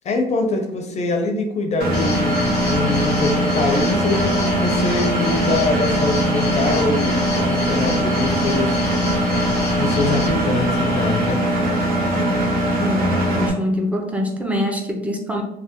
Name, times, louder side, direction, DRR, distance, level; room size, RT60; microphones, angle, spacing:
voice 1, 0.0-11.4, left 2 dB, 40° left, 3 dB, 0.5 m, -24 dB
Engine, 1.8-13.5, right 1 dB, 65° right, 0.8 m, -21 dB
sound 1, 1.9-11.3, left 4 dB, 85° left, 0.6 m, -30 dB
voice 2, 12.8-15.4, equal, 10° right, 2 dB, 0.6 m, -24 dB
3.2 x 2.0 x 2.9 m, 0.81 s
cardioid pair, 110°, 17 cm